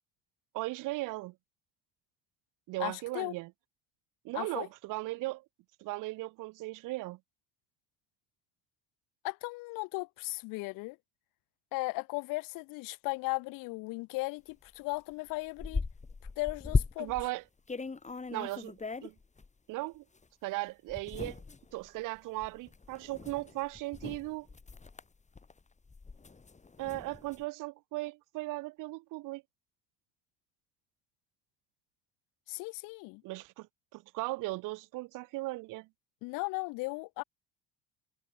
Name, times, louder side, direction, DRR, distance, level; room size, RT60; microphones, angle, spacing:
voice 1, 0.5-1.3 2.7-3.5 4.2-5.4 5.8-7.2 17.0-17.4 18.3-18.7 19.0-19.1 19.7-20.0 20.4-21.4 21.7-24.5 26.8-29.4 33.2-33.7 33.9-35.9, right 20 dB, 70° right, 1.4 m, -37 dB
voice 2, 2.8-3.3 4.3-4.7 9.2-11.0 11.7-15.8 16.4-17.1 32.5-33.2 36.2-37.2, left 24 dB, 75° left, 4.1 m, -36 dB
sound 1, 14.7-14.8 15.1-17.3 17.7-19.5 20.2-20.3 20.9-27.4, left 4 dB, 20° left, 4.4 m, -37 dB
supercardioid pair, 85°, 33 cm